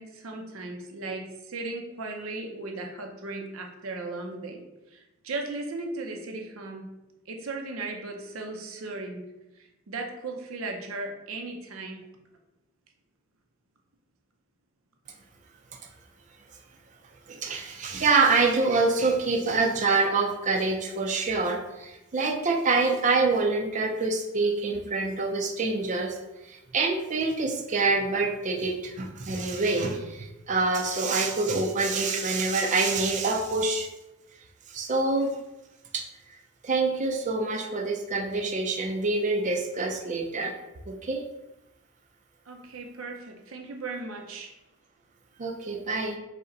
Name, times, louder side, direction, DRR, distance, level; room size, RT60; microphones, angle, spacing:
voice 1, 0.0-4.6 4.9-6.9 7.3-9.3 9.6-12.0 42.5-44.5, right 3 dB, 80° right, 3 dB, 0.6 m, -37 dB
voice 2, 17.3-33.9 34.7-35.3 35.9-36.0 36.3-36.4 36.6-40.5 40.9-41.2 45.4-46.2, right 3 dB, 35° right, 0 dB, 0.4 m, -26 dB
5.2 x 2.1 x 3.8 m, 0.98 s
head